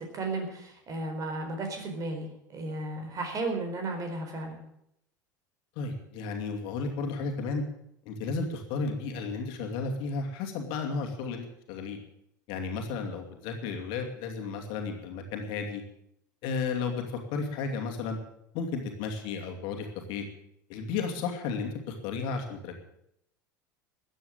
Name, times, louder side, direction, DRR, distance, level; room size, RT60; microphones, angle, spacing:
voice 1, 0.1-4.6, right 2 dB, 35° right, 4 dB, 4.3 m, -34 dB
voice 2, 5.8-7.6 8.1-12.0 12.5-15.8 16.4-17.0 17.3-18.2 18.5-20.2 20.7-22.8, left 4 dB, 55° left, 3 dB, 2.6 m, -33 dB
14.0 x 9.2 x 8.8 m, 0.77 s
figure-of-eight pair, 75°, 10 cm